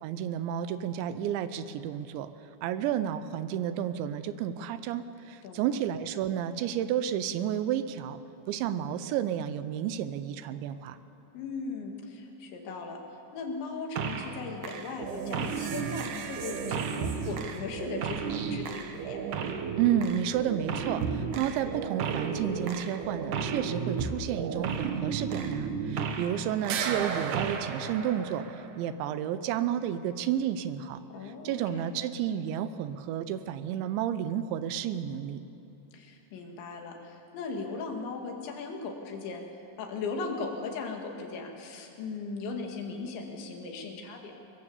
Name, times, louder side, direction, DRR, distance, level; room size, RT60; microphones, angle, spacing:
voice 1, 0.0-2.3 2.6-8.2 8.5-11.0 19.8-31.0 31.4-35.4, right 10 dB, 85° right, 12 dB, 3.1 m, -31 dB
voice 2, 5.4-5.8 11.3-13.0 13.3-19.2 31.1-31.9 35.9-39.5 39.8-44.4, left 4 dB, 75° left, 2 dB, 4.4 m, -38 dB
sound 1, 14.0-14.4 14.6-26.4 26.6-28.8, right 6 dB, 70° right, 2.0 m, -33 dB
22.5 x 22.0 x 7.2 m, 2.7 s
omnidirectional pair, 5.3 m